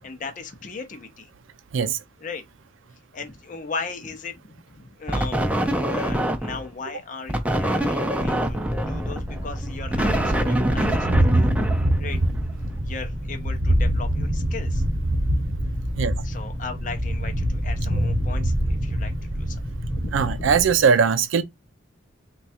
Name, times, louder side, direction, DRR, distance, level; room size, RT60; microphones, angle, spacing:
voice 1, 0.0-1.3 2.2-2.4 3.1-11.6 12.0-14.8 16.2-19.1 19.4-19.6 19.9-20.5, left 4 dB, 40° left, 0.6 m, -37 dB
sound 1, 5.1-6.7 7.3-12.4, right 1 dB, 5° right, 0.5 m, -25 dB
Thunder, 8.4-20.8, equal, 40° right, 0.9 m, -25 dB
voice 2, 20.1-21.4, right 6 dB, 85° right, 0.4 m, -20 dB
3.2 x 2.3 x 4.1 m
head